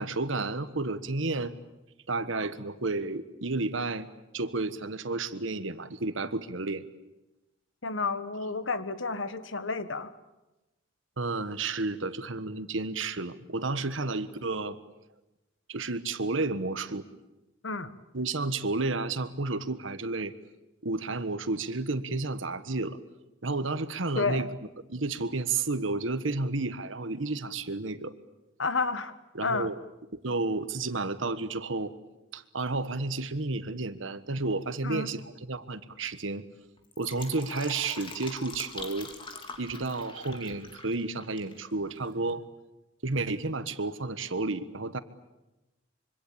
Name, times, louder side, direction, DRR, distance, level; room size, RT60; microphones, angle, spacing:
voice 1, 0.0-1.5 2.1-4.1 4.3-6.8 11.2-14.8 15.7-17.0 18.1-20.3 20.8-23.0 23.4-24.5 24.9-28.1 29.3-29.7 30.1-31.9 32.3-36.4 37.0-39.1 39.6-42.4 43.0-45.0, right 3 dB, 75° right, 13 dB, 1.4 m, -31 dB
voice 2, 7.8-10.1 17.6-18.0 24.1-24.5 28.6-29.1 29.4-29.7 34.8-35.1, left 4 dB, 70° left, 13 dB, 1.5 m, -31 dB
Fill (with liquid), 36.8-41.6 41.8-41.9, left 3 dB, 25° left, 3.2 m, -43 dB
25.5 x 24.5 x 8.7 m, 1.0 s
head